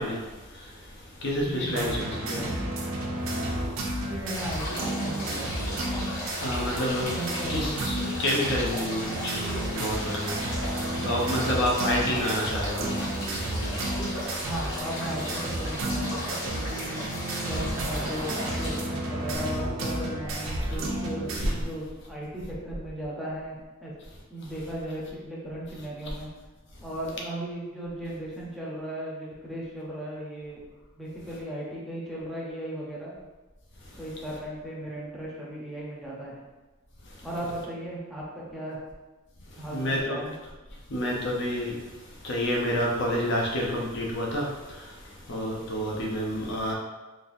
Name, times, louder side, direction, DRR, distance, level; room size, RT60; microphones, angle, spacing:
voice 1, 0.0-2.5 3.2-4.1 6.2-7.1 7.5-14.5 20.6-20.7 33.8-34.0 37.0-37.3 39.5-40.2 40.9-46.7, equal, 55° left, -2 dB, 0.7 m, -30 dB
voice 2, 1.4-2.5 4.1-5.5 7.1-8.0 14.4-17.0 17.4-23.9 24.3-26.3 26.8-30.6 30.9-33.1 34.0-36.4 37.2-38.8 39.6-40.3, right 1 dB, ahead, -6 dB, 0.7 m, -36 dB
sound 1, 1.7-21.5, right 1 dB, 70° right, 0.6 m, -32 dB
sound 2, 4.3-18.8, equal, 90° left, 1.4 m, -36 dB
4.0 x 2.6 x 2.6 m, 1.2 s
head